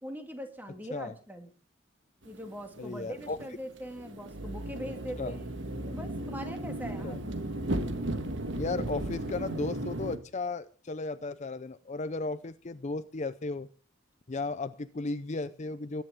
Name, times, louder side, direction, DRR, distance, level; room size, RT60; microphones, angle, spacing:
voice 1, 0.0-1.5 2.2-5.5 5.9-7.3, equal, 10° right, 4 dB, 2.3 m, -41 dB
sound 1, 2.2-10.2, right 1 dB, 65° right, 1.6 m, -35 dB
voice 2, 2.8-3.4 5.2-5.4 7.0-7.2 8.5-13.7 14.3-16.0, left 3 dB, 35° left, 13 dB, 0.5 m, -35 dB
21.5 x 10.5 x 3.6 m, 0.39 s
head